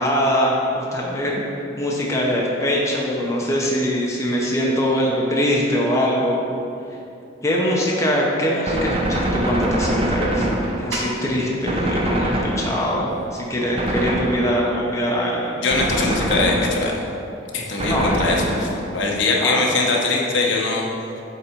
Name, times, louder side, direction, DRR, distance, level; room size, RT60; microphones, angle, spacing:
voice 1, 0.0-1.4 1.8-6.4 7.4-10.5 10.8-15.5 17.8-18.1 19.4-19.6, equal, 15° left, -4 dB, 0.7 m, -22 dB
Gunshot gunfire, 8.7-11.2 11.7-13.1 13.8-14.8 15.7-17.1 17.8-19.0, right 1 dB, 30° right, 0.7 m, -24 dB
sound 1, 9.1-14.1, right 1 dB, 75° right, 1.0 m, -39 dB
voice 2, 15.6-16.9 17.5-20.9, left 3 dB, 70° left, -1 dB, 1.0 m, -22 dB
7.6 x 4.1 x 4.4 m, 2.7 s
head